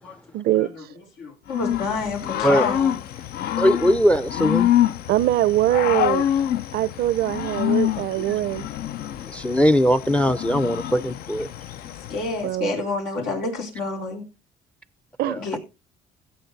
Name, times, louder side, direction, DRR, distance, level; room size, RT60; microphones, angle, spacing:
voice 1, 0.3-0.7 5.1-6.2 6.7-8.7 12.4-12.7 15.2-15.4, right 14 dB, 70° right, 0.5 m, -22 dB
voice 2, 1.2-2.9 7.7-7.8 12.1-14.2 15.4-15.6, left 3 dB, 90° left, 4.1 m, -28 dB
Growling / Cricket, 1.5-12.4, left 11 dB, 65° left, 0.6 m, -26 dB
voice 3, 3.6-4.7 8.3-8.4 9.1-11.5 15.3-15.4, equal, 5° left, 0.5 m, -20 dB
16.0 x 6.5 x 4.0 m
cardioid pair, 110°, 17 cm